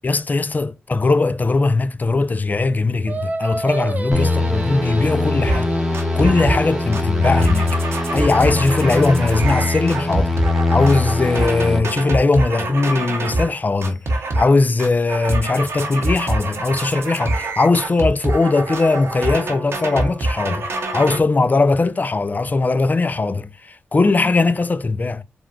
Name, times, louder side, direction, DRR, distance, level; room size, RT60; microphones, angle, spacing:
voice 1, 0.0-10.4 10.7-25.2, left 3 dB, 40° left, 0.4 m, -19 dB
Singing, 3.1-8.4, right 2 dB, 40° right, 0.7 m, -30 dB
sound 1, 4.1-11.8, left 2 dB, ahead, 0.9 m, -22 dB
sound 2, 5.5-5.7 5.9-6.7 6.9-13.5 13.8-14.5 14.8-21.2, right 2 dB, 75° right, 0.8 m, -25 dB
3.6 x 2.2 x 2.4 m
cardioid pair, 50°, 4 cm